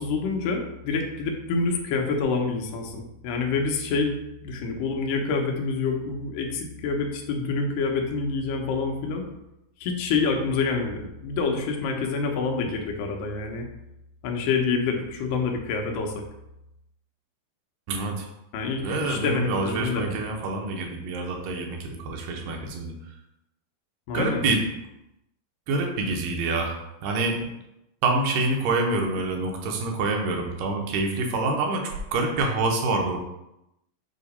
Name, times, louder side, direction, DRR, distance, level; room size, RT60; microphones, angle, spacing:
voice 1, 0.0-4.1 4.4-9.2 9.8-13.7 14.2-16.1 18.5-20.1 24.1-24.5, left 4 dB, 80° left, 2 dB, 2.5 m, -27 dB
voice 2, 17.9-18.3 18.8-22.9 24.1-24.6 25.7-27.5 28.0-33.2, right 3 dB, 90° right, 2 dB, 2.6 m, -26 dB
6.6 x 2.8 x 5.3 m, 0.89 s
omnidirectional pair, 3.8 m